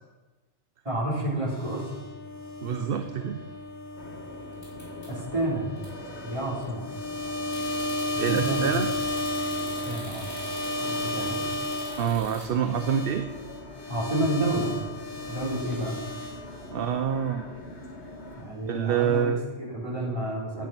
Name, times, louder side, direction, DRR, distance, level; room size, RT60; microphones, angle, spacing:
voice 1, 0.8-1.9 5.1-5.7 6.2-6.9 8.1-8.7 9.8-10.3 10.8-11.5 13.9-14.7 15.3-16.0 18.4-19.3 19.6-20.7, right 1 dB, 30° right, -5 dB, 3.6 m, -30 dB
sound 1, 1.5-12.0 12.6-16.8, left 1 dB, 15° left, 4.7 m, -34 dB
voice 2, 2.6-3.4 8.2-8.9 12.0-13.3 16.7-17.5 18.7-19.4, right 7 dB, 60° right, 8 dB, 0.8 m, -26 dB
sound 2, 4.0-18.4, left 2 dB, 85° left, 1.8 m, -44 dB
sound 3, 4.5-5.4 5.8-5.9 6.4-6.8 7.5-12.5, equal, 40° left, 4.5 m, -44 dB
10.5 x 8.8 x 5.9 m, 1.2 s
omnidirectional pair, 1.1 m